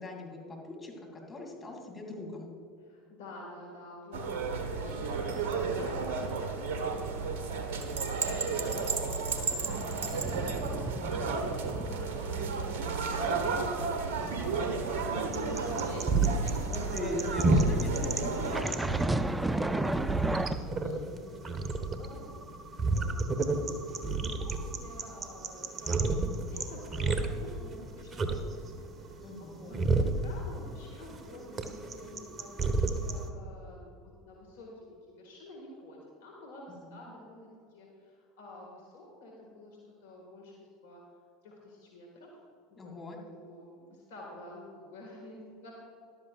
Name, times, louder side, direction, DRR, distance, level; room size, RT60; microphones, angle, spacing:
voice 1, 0.0-2.5 14.2-14.7 16.6-19.0 23.0-23.4 29.2-29.8 36.7-36.9 42.8-43.2, left 2 dB, 25° left, 0 dB, 2.8 m, -41 dB
voice 2, 2.8-6.9 7.2-17.9 18.3-22.3 22.7-33.9 34.2-41.0 41.4-42.4 42.7-45.7, left 1 dB, 75° left, -2 dB, 1.9 m, -49 dB
sound 1, 4.1-18.6, right 4 dB, 70° right, 1.2 m, -33 dB
sound 2, 10.0-12.0 12.3-12.5 12.9-16.5 17.5-20.6, right 1 dB, 10° right, 0.5 m, -34 dB
sound 3, 14.2-33.3, right 3 dB, 35° right, 1.1 m, -31 dB
13.5 x 12.0 x 2.5 m, 2.4 s
hypercardioid pair, 75°, 0 cm